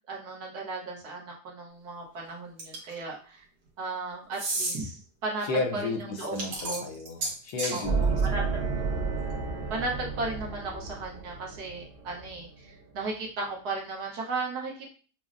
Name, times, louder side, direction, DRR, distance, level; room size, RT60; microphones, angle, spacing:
voice 1, 0.1-3.5 3.8-5.5 5.7-5.8 6.1-6.4 6.7-6.9 7.7-8.4 9.3-14.9, right 3 dB, 70° right, -2 dB, 1.5 m, -35 dB
sound 1, 2.6-3.0 4.3-4.8 6.2-7.8, right 2 dB, 90° right, 1.8 m, -32 dB
voice 2, 5.4-8.7, left 3 dB, 75° left, 3 dB, 1.2 m, -33 dB
sound 2, 7.8-12.6, right 4 dB, 55° right, 0.6 m, -31 dB
6.1 x 2.1 x 2.5 m, 0.40 s
omnidirectional pair, 1.8 m